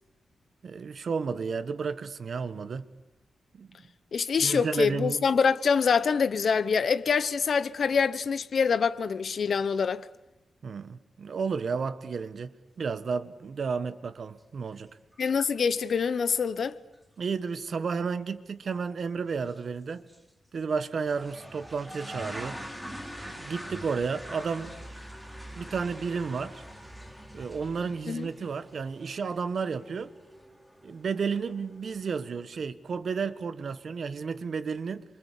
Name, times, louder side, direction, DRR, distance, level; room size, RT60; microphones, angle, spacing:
voice 1, 0.6-2.9 3.5-3.7 4.4-5.2 10.6-14.9 17.2-20.0 20.5-22.6 23.2-24.7 25.5-26.6 27.3-30.1 30.8-35.0, right 5 dB, 55° right, 1.5 m, -32 dB
voice 2, 4.1-10.0 15.2-16.8 28.1-28.3, left 6 dB, 55° left, 1.1 m, -25 dB
sound 1, 14.7-14.8 15.1-15.6 15.9-16.0 16.6-16.7 16.9-17.0 18.7-18.9 19.4-19.6 20.1-20.2 21.0-32.3, equal, ahead, 3.1 m, -44 dB
27.5 x 24.5 x 8.6 m
wide cardioid pair, 135°, 0 cm